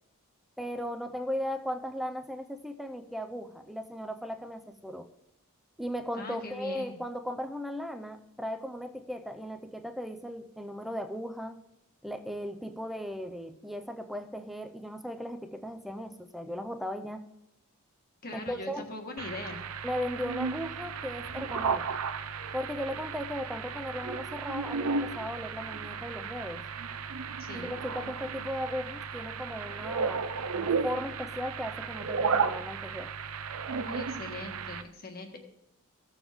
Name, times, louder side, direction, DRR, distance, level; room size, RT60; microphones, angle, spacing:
voice 1, 0.6-5.1 5.8-11.6 12.0-17.2 18.3-18.9 19.8-22.0 22.5-26.6 27.5-30.3 30.5-33.1, equal, ahead, 6 dB, 0.5 m, -37 dB
voice 2, 6.1-7.0 18.2-19.6 27.4-27.7 33.8-35.4, left 2 dB, 45° left, 4 dB, 1.5 m, -41 dB
sound 1, 19.2-34.8, right 5 dB, 70° right, 0.6 m, -34 dB
16.0 x 7.1 x 3.6 m, 0.85 s
head